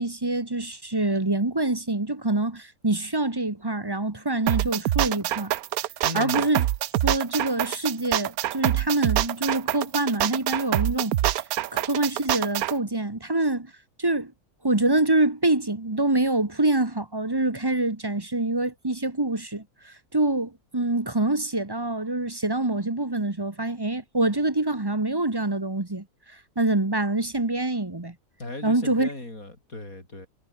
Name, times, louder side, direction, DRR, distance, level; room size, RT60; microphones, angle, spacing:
voice 1, 0.0-5.5 6.1-6.6 7.0-11.2 11.7-13.7 14.0-14.3 14.6-26.0 26.6-28.1 28.6-29.1, right 2 dB, 15° right, 1.3 m, -25 dB
sound 1, 4.5-12.7, right 14 dB, 70° right, 1.1 m, -25 dB
voice 2, 6.0-6.5 28.4-30.3, left 2 dB, 60° left, 6.9 m, -37 dB
omnidirectional pair, 1.6 m